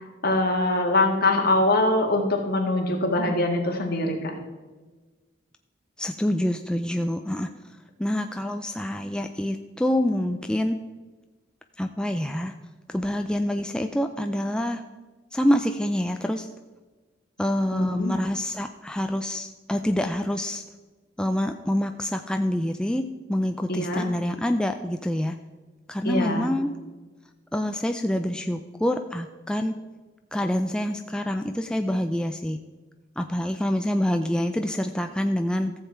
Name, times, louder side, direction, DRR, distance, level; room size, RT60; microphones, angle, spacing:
voice 1, 0.2-4.3 17.7-18.1 23.7-24.1 26.0-26.5, left 2 dB, 55° left, 2 dB, 1.9 m, -23 dB
voice 2, 6.0-7.5 8.0-10.8 11.8-12.5 12.9-14.8 15.3-16.5 17.4-20.6 21.2-25.4 25.9-26.8 27.5-29.8 30.3-32.6 33.2-35.7, left 1 dB, 5° left, 6 dB, 0.4 m, -26 dB
14.5 x 7.5 x 4.5 m, 1.3 s
head